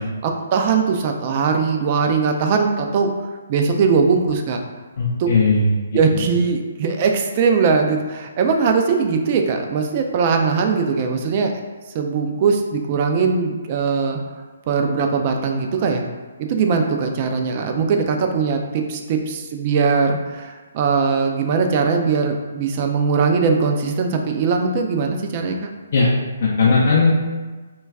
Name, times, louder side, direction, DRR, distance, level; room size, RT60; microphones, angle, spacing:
voice 1, 0.0-3.1 3.5-4.6 5.2-5.3 5.9-11.5 11.9-14.2 14.7-16.0 16.4-25.7, right 5 dB, 40° right, 4 dB, 0.3 m, -20 dB
voice 2, 5.0-5.7 6.1-6.2 25.9-26.1 26.4-27.1, left 4 dB, 55° left, -5 dB, 0.4 m, -17 dB
2.2 x 2.2 x 3.4 m, 1.3 s
figure-of-eight pair, 135°, 0 cm